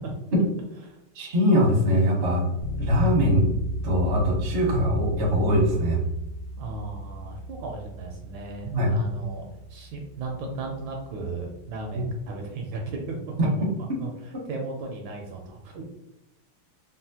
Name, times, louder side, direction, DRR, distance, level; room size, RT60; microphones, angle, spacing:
voice 1, 1.1-2.4 2.8-3.5 3.8-6.0 8.7-8.9 13.4-13.5, equal, 50° right, -3 dB, 0.6 m, -22 dB
Bass guitar, 2.6-12.3, right 1 dB, 70° left, 1.3 m, -36 dB
voice 2, 6.6-13.2 14.0-15.8, right 3 dB, 75° right, 1 dB, 1.2 m, -36 dB
4.2 x 2.1 x 2.7 m, 0.89 s
omnidirectional pair, 2.4 m